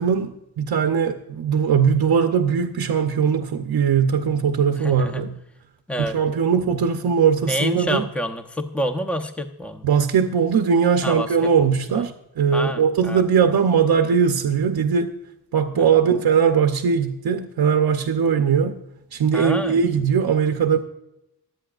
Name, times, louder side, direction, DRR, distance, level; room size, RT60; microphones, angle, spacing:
voice 1, 0.0-5.4 6.0-8.0 9.8-15.1 15.5-18.8 19.1-20.8, right 6 dB, 90° right, 5 dB, 0.9 m, -20 dB
voice 2, 4.8-5.2 5.9-6.2 7.5-9.9 11.0-11.3 11.9-12.0 12.5-13.2 15.7-16.0 19.3-19.8, equal, 5° left, 6 dB, 0.8 m, -27 dB
24.0 x 8.7 x 2.5 m, 0.86 s
wide cardioid pair, 120°, 36 cm